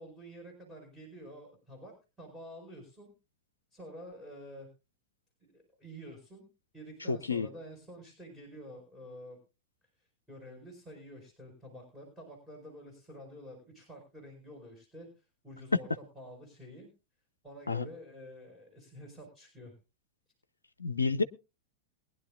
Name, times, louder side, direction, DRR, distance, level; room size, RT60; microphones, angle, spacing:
voice 1, 0.0-3.1 3.7-4.7 5.4-6.5 6.7-9.4 10.0-15.9 16.1-16.9 17.4-19.7, equal, ahead, 4.9 m, -49 dB
voice 2, 7.1-7.5 17.7-17.9 20.8-21.2, left 4 dB, 75° left, 0.6 m, -29 dB
22.5 x 10.5 x 2.4 m
figure-of-eight pair, 90°, 0 cm